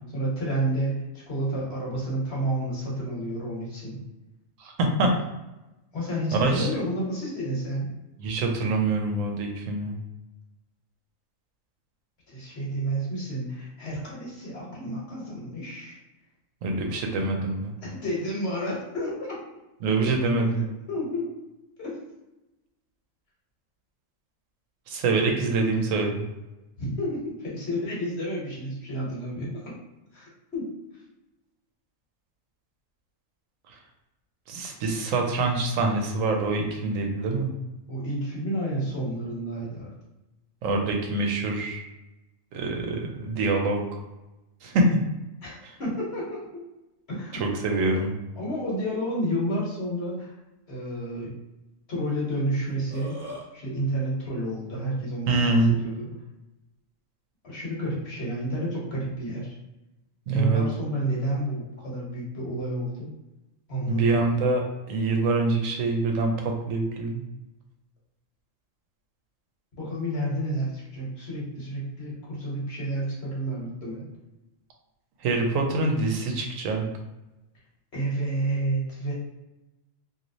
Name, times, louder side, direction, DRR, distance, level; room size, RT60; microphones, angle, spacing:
voice 1, 0.1-4.0 5.9-7.9 12.3-16.0 17.8-19.1 20.9-21.3 21.8-22.0 25.2-25.5 26.8-29.7 30.1-31.0 37.9-39.9 45.4-46.6 47.1-47.4 48.4-50.4 50.7-51.3 51.9-53.2 53.5-56.1 57.4-59.6 60.3-63.1 63.7-64.2 69.8-74.0 77.9-79.1, right 1 dB, 55° left, -4 dB, 1.2 m, -30 dB
voice 2, 4.6-5.1 6.4-6.7 8.2-10.0 16.6-17.7 19.8-20.6 24.9-26.3 34.5-37.5 40.6-41.8 42.5-43.8 44.6-44.9 47.3-48.1 55.3-55.8 60.3-60.6 63.9-67.2 75.2-76.9, right 3 dB, 80° right, 2 dB, 1.0 m, -25 dB
Burping eructation, 52.6-53.5, right 1 dB, 45° right, 0.9 m, -39 dB
3.0 x 2.7 x 2.6 m, 0.99 s
omnidirectional pair, 1.3 m